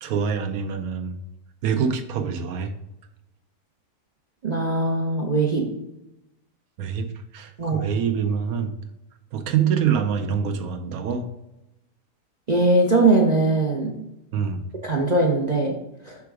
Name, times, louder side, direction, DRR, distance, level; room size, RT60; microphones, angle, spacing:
voice 1, 0.0-1.2 1.6-2.7 6.8-7.1 7.3-8.7 9.3-11.3 14.3-14.6, right 7 dB, 70° right, 7 dB, 1.0 m, -25 dB
voice 2, 4.4-5.7 7.6-7.8 12.5-13.9 14.8-15.7 16.1-16.2, right 2 dB, 50° right, 0 dB, 0.5 m, -20 dB
5.9 x 3.5 x 4.7 m, 0.90 s
omnidirectional pair, 1.8 m